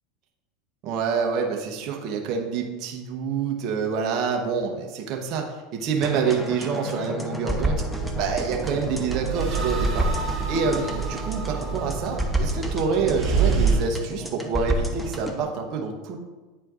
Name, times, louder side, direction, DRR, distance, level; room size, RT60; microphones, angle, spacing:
voice 1, 0.8-7.8 8.2-10.1 10.5-16.2, right 5 dB, 50° right, 1 dB, 0.9 m, -27 dB
sound 1, 6.0-15.4, right 1 dB, ahead, 0.8 m, -30 dB
sound 2, 7.9-13.8, right 5 dB, 35° right, 2.0 m, -27 dB
9.1 x 4.4 x 2.5 m, 1.2 s
hypercardioid pair, 90°, 0 cm